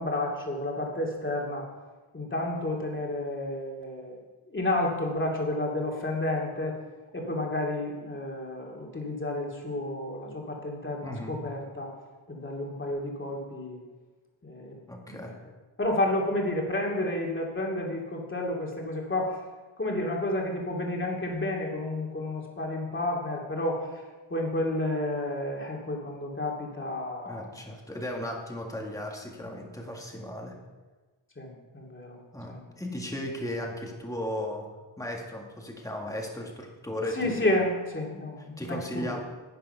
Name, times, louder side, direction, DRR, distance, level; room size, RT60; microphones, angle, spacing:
voice 1, 0.0-1.7 2.1-4.2 4.5-6.8 7.1-11.9 12.3-13.8 14.4-14.8 15.1-15.3 15.8-19.4 19.8-24.0 24.3-27.5 31.4-32.2 32.5-32.6 37.1-39.2, left 1 dB, 25° left, -1 dB, 2.7 m, -31 dB
voice 2, 11.0-11.4 14.9-15.4 27.2-30.6 32.3-34.7 35.0-37.5 38.6-39.2, left 1 dB, 5° left, 1 dB, 1.8 m, -36 dB
10.5 x 9.3 x 5.5 m, 1.3 s
wide cardioid pair, 105°, 48 cm